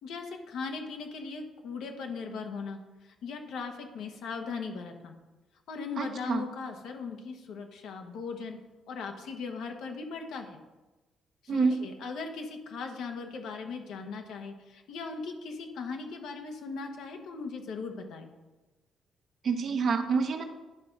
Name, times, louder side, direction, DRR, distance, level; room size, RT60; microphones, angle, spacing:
voice 1, 0.0-2.8 3.2-5.1 5.7-8.6 8.9-10.6 11.4-18.3, left 4 dB, 80° left, 4 dB, 1.1 m, -38 dB
voice 2, 6.0-6.5 11.5-11.8 19.4-20.4, right 5 dB, 60° right, 6 dB, 1.0 m, -27 dB
10.5 x 3.9 x 5.9 m, 1.1 s
cardioid pair, 90°, 0 cm